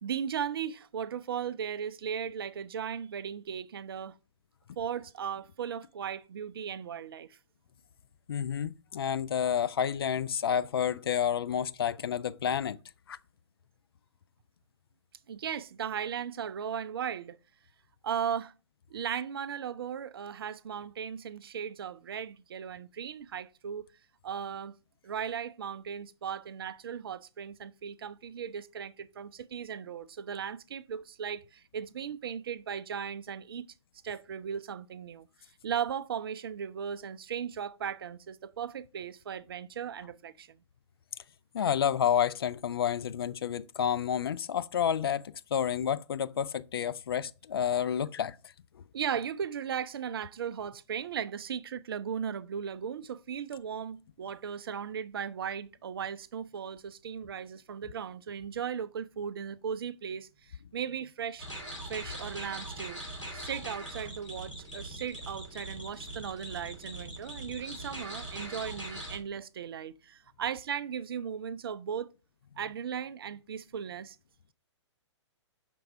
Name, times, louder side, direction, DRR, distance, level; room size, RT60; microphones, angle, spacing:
voice 1, 0.0-4.2 4.8-7.4 15.3-17.4 18.0-18.5 18.9-23.9 24.2-24.8 25.0-33.7 34.0-35.3 35.6-40.6 48.9-61.5 61.9-63.0 63.3-72.1 72.6-74.2, right 8 dB, 50° right, 0.4 m, -37 dB
voice 2, 8.3-12.8 13.1-13.2 41.5-48.4, left 8 dB, 55° left, 0.4 m, -30 dB
sound 1, 61.4-69.2, right 1 dB, 90° left, 2.6 m, -41 dB
5.9 x 4.5 x 3.7 m
figure-of-eight pair, 120°, 15 cm